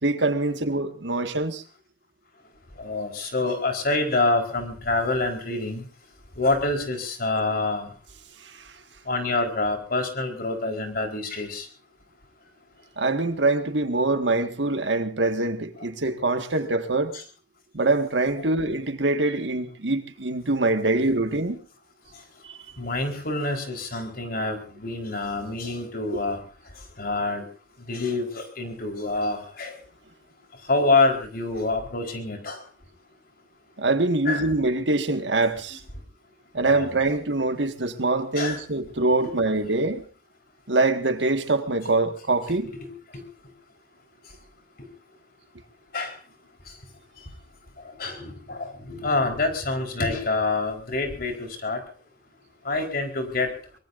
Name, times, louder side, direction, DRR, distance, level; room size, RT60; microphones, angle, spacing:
voice 1, 0.0-1.6 13.0-17.1 17.7-21.6 22.5-22.6 33.8-35.8 36.5-40.0 40.7-42.7, right 2 dB, 85° right, 1.8 m, -24 dB
voice 2, 2.8-5.8 6.4-7.9 9.1-11.7 17.1-17.2 22.8-26.4 27.0-27.4 27.9-29.8 30.7-32.6 34.3-34.5 36.6-37.0 38.4-38.6 39.2-39.3 42.5-43.2 45.9-46.1 48.0-51.8 52.6-53.5, left 3 dB, 55° left, 4.4 m, -26 dB
23.5 x 22.5 x 2.7 m
head